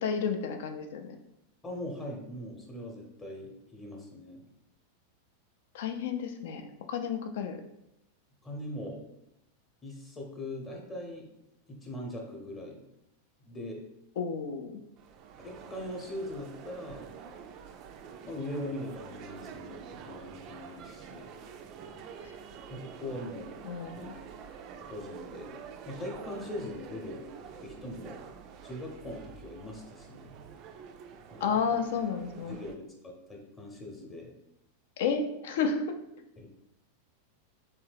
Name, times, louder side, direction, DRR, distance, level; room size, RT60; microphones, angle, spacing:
voice 1, 0.0-1.2 5.7-7.6 14.2-14.8 23.6-24.2 31.4-32.6 35.0-36.0, left 6 dB, 55° left, 7 dB, 0.4 m, -31 dB
voice 2, 1.6-4.4 8.4-9.0 9.8-11.3 11.7-12.8 13.4-13.8 15.4-17.1 18.2-21.3 22.7-23.5 23.9-24.1 24.9-25.5 25.9-27.2 27.6-28.2 28.6-30.3 31.3-31.7 32.5-34.3 36.4-36.5, left 1 dB, 20° left, 0 dB, 0.8 m, -41 dB
sound 1, 15.0-32.7, right 6 dB, 40° right, 0.3 m, -47 dB
3.5 x 2.9 x 3.4 m, 0.83 s
figure-of-eight pair, 90°, 0 cm